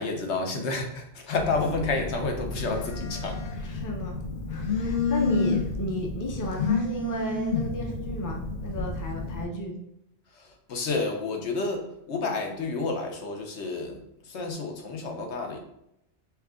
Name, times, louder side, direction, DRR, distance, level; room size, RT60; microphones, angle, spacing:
voice 1, 0.0-3.5 10.3-15.6, left 3 dB, 85° left, 3 dB, 1.1 m, -30 dB
Telephone, 1.4-9.4, left 4 dB, 55° left, 0.8 m, -30 dB
voice 2, 3.6-4.2 4.5-9.7, left 1 dB, 20° left, 1 dB, 0.5 m, -33 dB
5.8 x 2.4 x 3.6 m, 0.82 s
omnidirectional pair, 1.1 m